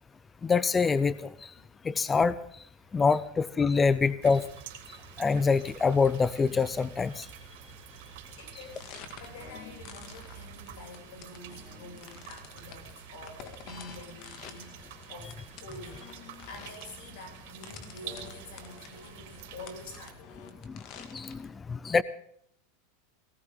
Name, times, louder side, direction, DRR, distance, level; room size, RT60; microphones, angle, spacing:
voice 1, 0.4-1.5 1.8-2.4 2.9-4.4 5.2-7.3 20.6-20.7 21.1-22.0, left 5 dB, 15° left, 17 dB, 0.6 m, -25 dB
sound 1, 4.2-20.1, right 9 dB, 65° right, 3.4 m, -48 dB
voice 2, 8.4-20.5, left 2 dB, 70° left, 2 dB, 7.1 m, -48 dB
sound 2, 8.5-21.5, left 7 dB, 45° left, 2.2 m, -50 dB
18.5 x 18.5 x 3.8 m, 0.68 s
supercardioid pair, 135°, 0 cm